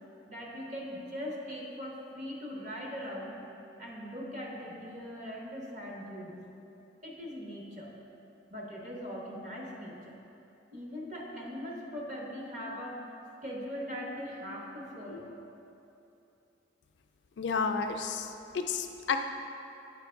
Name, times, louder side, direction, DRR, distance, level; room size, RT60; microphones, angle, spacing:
voice 1, 0.3-3.4 3.8-6.4 7.0-7.9 8.5-10.2 10.7-13.0 13.4-15.3, equal, 45° right, -3 dB, 1.0 m, -40 dB
voice 2, 17.4-18.2 18.7-19.2, left 5 dB, 75° left, 5 dB, 0.4 m, -30 dB
8.1 x 4.5 x 3.4 m, 2.9 s
head